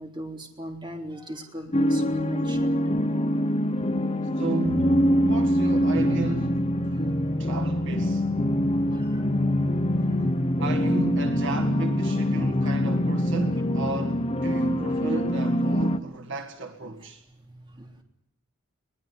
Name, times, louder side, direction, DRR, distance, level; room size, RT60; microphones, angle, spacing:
voice 1, 0.0-2.8 6.9-7.0 8.9-9.3 9.8-10.5 12.6-12.7 17.3-18.0, right 1 dB, 25° right, 3.5 m, -40 dB
sound 1, 1.7-16.0, equal, 30° left, 0.9 m, -24 dB
voice 2, 4.4-6.7 7.4-8.3 10.6-17.2, right 2 dB, 60° right, 1.7 m, -33 dB
21.5 x 19.5 x 9.6 m
head